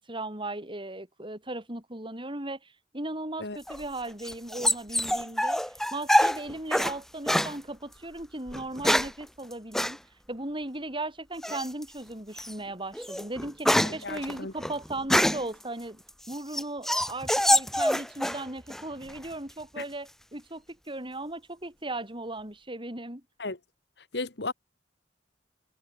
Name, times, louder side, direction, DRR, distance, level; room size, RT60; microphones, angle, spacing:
voice 1, 0.1-5.6 5.9-10.0 10.3-23.2, right 2 dB, 30° right, 7.6 m, -37 dB
sound 1, 3.7-7.0 7.3-7.6 8.5-9.2 9.7-10.0 11.4-11.8 12.4-12.5 12.9-15.6 16.1-18.4 18.7-19.3, equal, ahead, 1.8 m, -25 dB
voice 2, 13.8-14.5 19.8-19.9 23.4-23.6 24.1-24.5, left 3 dB, 70° left, 2.2 m, -34 dB
head